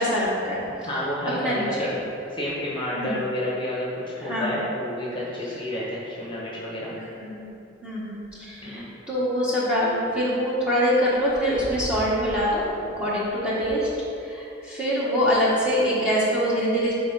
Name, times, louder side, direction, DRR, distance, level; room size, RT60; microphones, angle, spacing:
voice 1, 0.0-0.6 1.4-1.9 2.9-3.2 4.2-4.7 6.9-7.5 7.8-12.7 13.0-13.9 14.2-16.9, equal, 5° right, -9 dB, 1.2 m, -24 dB
voice 2, 0.8-1.9 2.3-6.9 8.6-8.8, left 1 dB, 25° left, -6 dB, 1.2 m, -30 dB
6.8 x 3.7 x 5.4 m, 2.8 s
head